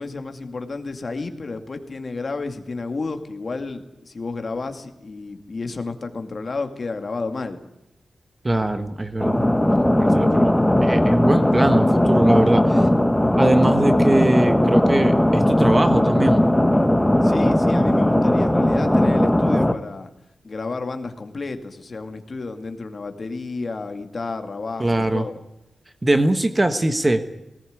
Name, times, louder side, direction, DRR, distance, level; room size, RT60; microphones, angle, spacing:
voice 1, 0.0-7.6 17.2-20.1 20.4-25.4, left 3 dB, 40° left, 7 dB, 2.3 m, -31 dB
voice 2, 8.4-9.4 10.0-12.8 13.4-16.5 24.8-25.2 26.0-27.2, right 1 dB, 15° right, 8 dB, 1.3 m, -21 dB
sound 1, 9.2-19.7, left 1 dB, 5° left, 1.2 m, -18 dB
19.0 x 19.0 x 9.5 m, 0.91 s
wide cardioid pair, 180°, 0 cm